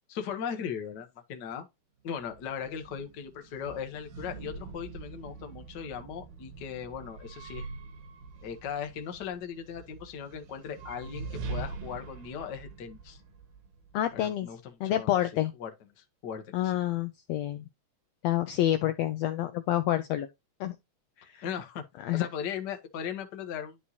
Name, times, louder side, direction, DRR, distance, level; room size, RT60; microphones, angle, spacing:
voice 1, 0.1-1.7 2.0-7.6 8.4-13.2 14.1-15.1 15.6-15.7 16.0-16.8 21.4-21.8 22.1-23.8, left 8 dB, 60° left, 1.1 m, -38 dB
sound 1, 2.1-14.2, right 4 dB, 85° right, 2.8 m, -44 dB
voice 2, 13.9-14.5 14.8-15.5 16.5-17.7 18.2-20.3 20.6-20.7 21.2-21.4 22.0-22.3, left 13 dB, 80° left, 1.5 m, -28 dB
11.0 x 4.4 x 2.8 m
omnidirectional pair, 3.5 m